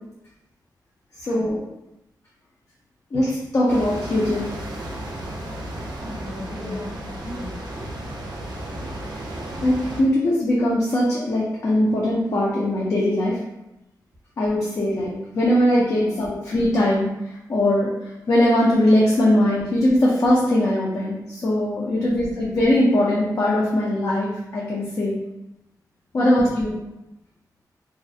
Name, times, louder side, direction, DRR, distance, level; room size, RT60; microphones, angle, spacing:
voice 1, 1.2-1.6 3.1-4.4 6.6-6.8 9.6-13.4 14.4-17.1 17.5-17.9 18.3-25.2 26.1-26.8, left 1 dB, 50° left, -5 dB, 0.4 m, -20 dB
sound 1, 3.7-10.0, right 1 dB, 85° right, 0.4 m, -34 dB
voice 2, 6.0-7.9 15.9-16.1 21.9-22.2 26.1-26.3, equal, 35° right, -2 dB, 0.6 m, -36 dB
2.4 x 2.0 x 2.5 m, 0.92 s
wide cardioid pair, 130°, 7 cm